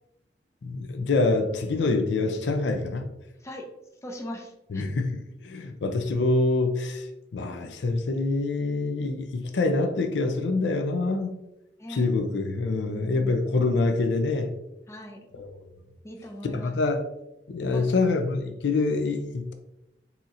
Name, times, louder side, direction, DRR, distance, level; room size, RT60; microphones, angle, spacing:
voice 1, 0.6-3.0 4.7-5.2 5.4-7.1 7.3-11.3 11.9-14.5 15.4-15.5 16.5-17.0 17.5-19.5, left 3 dB, 80° left, 7 dB, 0.4 m, -25 dB
voice 2, 4.0-5.0 11.8-12.1 12.8-13.4 14.9-15.2 16.0-16.7 17.7-17.9, left 1 dB, 15° left, 2 dB, 0.4 m, -40 dB
4.0 x 2.8 x 2.5 m, 0.90 s
head